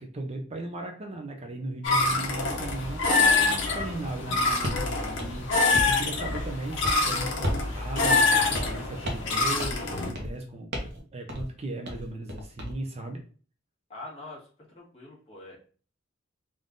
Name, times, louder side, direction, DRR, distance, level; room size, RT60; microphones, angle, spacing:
voice 1, 0.0-13.2, right 2 dB, 35° right, 3 dB, 0.6 m, -37 dB
sound 1, 1.8-10.1, left 3 dB, 65° left, 1.0 m, -25 dB
voice 2, 1.9-2.3 13.9-15.6, left 2 dB, 30° left, -4 dB, 1.6 m, -45 dB
sound 2, 4.6-4.8 5.2-6.0 6.3-6.6 6.8-7.0 7.4-7.7 8.0-8.1 8.5-8.8 9.0-9.3 9.6-9.8 10.1-10.4 10.7-11.0 11.3-11.5 11.8-12.7, equal, 55° right, 1.0 m, -33 dB
3.6 x 2.6 x 3.6 m, 0.40 s
head